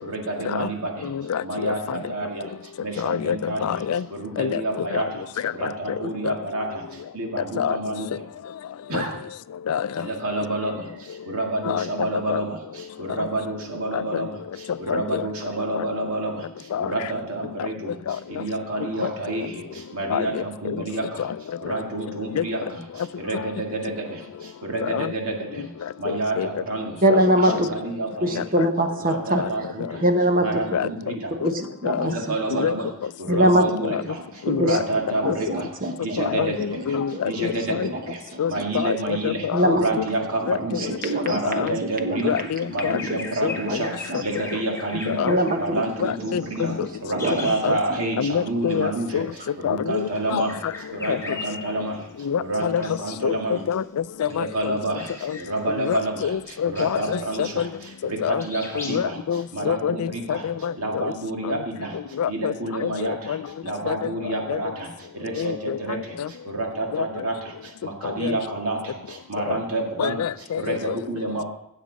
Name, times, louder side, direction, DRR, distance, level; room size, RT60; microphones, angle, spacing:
voice 1, 0.0-1.1 1.4-3.8 4.1-5.2 5.5-8.1 8.9-9.2 10.0-21.3 21.6-25.7 26.0-27.0 27.4-28.4 29.0-30.0 30.4-31.3 32.0-32.9 33.2-35.7 36.0-37.0 37.2-38.2 38.5-39.5 39.7-42.4 42.7-43.9 44.2-45.3 45.6-49.2 49.6-50.6 50.9-53.6 54.3-59.2 59.5-60.5 60.8-62.0 62.3-63.4 63.6-70.2 70.6-71.4, right 2 dB, 70° right, 2.1 m, -29 dB
voice 2, 1.1-2.0 3.0-4.0 4.4-4.6 4.9-5.1 5.4-5.5 6.2-6.3 7.6-7.8 8.9-9.0 9.7-9.9 11.7-11.9 12.3-12.4 14.1-14.2 14.9-15.2 15.8-15.9 16.7-16.9 18.1-18.2 20.1-20.3 20.7-20.8 22.4-22.5 24.8-25.1 26.1-26.5 27.1-27.2 27.5-27.6 28.4-28.7 29.4-29.5 30.7-30.9 31.4-31.5 31.8-32.1 32.5-32.7 33.4-33.5 33.8-34.0 34.5-34.8 35.3-35.4 36.2-37.9 38.4-39.8 40.5-40.6 41.5-41.8 42.2-43.0 43.4-43.8 45.1-45.4 46.0-46.8 47.6-47.8 48.2-49.3 49.6-50.5 51.1-51.2 52.3-52.8 53.2-53.8 54.2-54.8 55.2-55.4 55.8-57.7 58.2-58.4 58.8-61.1 61.5-61.6 62.2-62.5 62.8-63.4 63.9-64.0 64.5-64.6 65.4-65.8 66.2-66.3 66.9-67.0 68.2-68.4 69.5-69.6 70.0-71.0, left 8 dB, 85° left, 0.4 m, -26 dB
voice 3, 27.0-27.7 28.2-29.4 30.0-30.5 31.4-32.7 33.3-33.7 34.5-34.8 35.2-36.5 36.9-37.0 37.9-38.4 38.8-38.9 39.5-39.8 40.7-42.3 43.1-43.2 43.6-44.5 45.2-45.8 46.7-46.8 47.1-47.5, right 1 dB, 40° right, 1.1 m, -23 dB
Bird vocalization bird call bird song, 42.2-48.3 48.6-48.8 49.8-52.1 52.6-53.2 53.6-58.1 58.4-59.0, left 3 dB, 15° left, 1.6 m, -40 dB
15.5 x 7.3 x 4.0 m
head